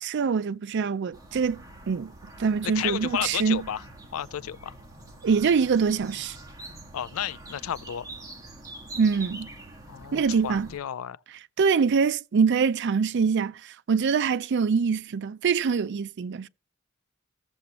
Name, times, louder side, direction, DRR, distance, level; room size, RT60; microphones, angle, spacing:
voice 1, 0.0-1.6 1.9-2.1 2.4-3.6 5.2-6.4 9.0-9.5 10.1-10.7 11.6-16.5, right 5 dB, 55° right, 0.4 m, -24 dB
sound 1, 1.1-10.8, right 2 dB, 15° right, 1.7 m, -45 dB
voice 2, 2.6-3.8 4.1-4.7 6.9-8.1 9.9-11.2, left 10 dB, 80° left, 0.4 m, -32 dB
15.5 x 6.9 x 2.9 m
head